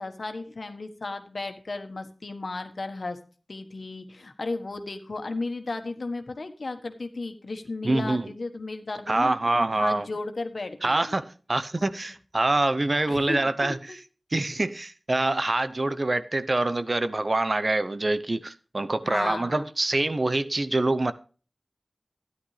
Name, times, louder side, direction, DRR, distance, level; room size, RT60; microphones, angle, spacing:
voice 1, 0.0-3.2 3.5-9.3 9.7-11.2 11.8-11.9 13.1-14.0 19.0-19.7, left 3 dB, 75° left, 1.4 m, -34 dB
voice 2, 7.8-8.3 9.1-10.1 10.8-14.0 14.3-21.1, right 2 dB, 50° right, 0.8 m, -25 dB
13.0 x 10.5 x 3.3 m
cardioid pair, 40°, 0 cm